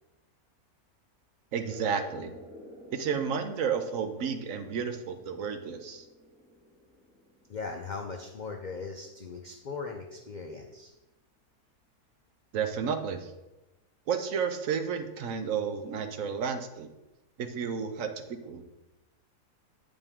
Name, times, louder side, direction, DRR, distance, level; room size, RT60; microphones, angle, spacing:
voice 1, 1.5-2.3 2.9-6.0 12.5-13.3 14.1-16.9 17.4-18.1 18.4-18.6, right 6 dB, 65° right, 7 dB, 1.0 m, -31 dB
sound 1, 1.6-8.8, equal, 5° right, 1.2 m, -51 dB
voice 2, 7.5-10.9, left 4 dB, 80° left, 3 dB, 0.4 m, -39 dB
8.3 x 5.2 x 3.6 m, 1.0 s
omnidirectional pair, 1.6 m